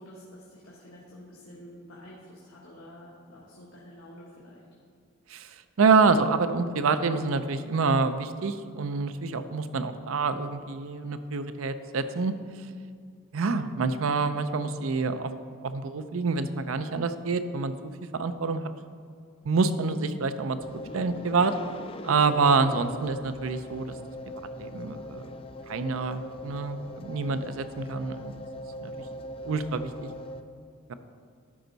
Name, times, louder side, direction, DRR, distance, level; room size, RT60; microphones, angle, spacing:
voice 1, 0.0-4.6, equal, 90° left, -7 dB, 1.7 m, -48 dB
voice 2, 5.8-12.3 13.3-15.3 15.6-17.7 18.1-18.7 19.4-20.6 20.9-21.5 22.0-23.9 24.6-25.3 25.7-28.4 28.8-28.9 29.5-30.1, right 4 dB, 75° right, 10 dB, 0.5 m, -27 dB
sound 1, 20.6-30.4, left 1 dB, 25° left, 0.3 m, -41 dB
12.5 x 5.3 x 4.0 m, 2.2 s
head